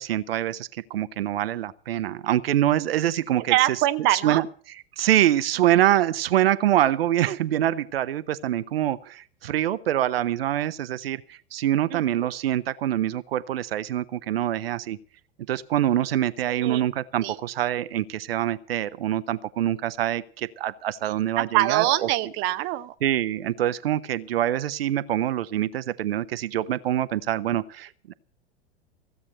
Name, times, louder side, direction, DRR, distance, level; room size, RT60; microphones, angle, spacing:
voice 1, 0.0-3.5 4.1-4.5 5.0-15.0 15.5-21.8 23.0-28.1, right 12 dB, 65° right, 15 dB, 0.9 m, -25 dB
voice 2, 3.5-4.4 11.9-12.3 16.5-16.9 17.2-17.4 21.4-22.9, right 15 dB, 35° right, 12 dB, 0.7 m, -24 dB
16.0 x 8.4 x 7.8 m, 0.43 s
figure-of-eight pair, 95°, 32 cm